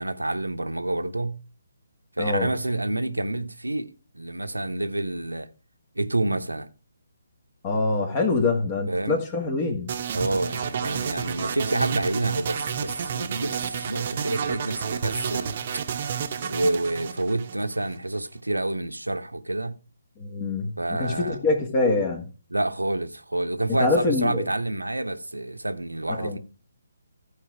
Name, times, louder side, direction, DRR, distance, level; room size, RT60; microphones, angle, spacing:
voice 1, 0.0-1.4 2.2-5.5 6.0-6.7 8.9-9.2 10.1-15.8 16.4-19.8 20.8-21.4 22.5-26.4, right 2 dB, 85° right, 0.9 m, -28 dB
voice 2, 2.2-2.5 7.6-9.9 20.2-22.3 23.7-24.5 26.2-26.4, left 3 dB, 30° left, 1.7 m, -25 dB
sound 1, 9.9-18.0, right 7 dB, 40° right, 0.9 m, -30 dB
14.0 x 5.0 x 4.8 m
figure-of-eight pair, 145°, 0 cm